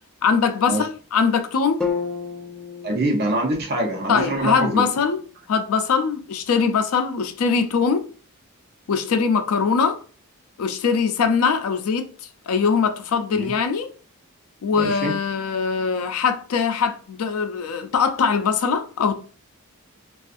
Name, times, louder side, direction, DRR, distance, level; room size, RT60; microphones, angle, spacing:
voice 1, 0.2-1.8 4.1-5.2 5.5-8.1 8.9-10.0 10.6-12.1 12.5-13.9 14.6-19.2, left 5 dB, 65° left, 0.4 m, -22 dB
sound 1, 1.8-5.9, left 5 dB, 5° left, 0.4 m, -33 dB
voice 2, 2.8-4.8 13.3-13.5 14.8-15.1, right 1 dB, 45° right, 0.7 m, -24 dB
2.4 x 2.4 x 2.4 m
head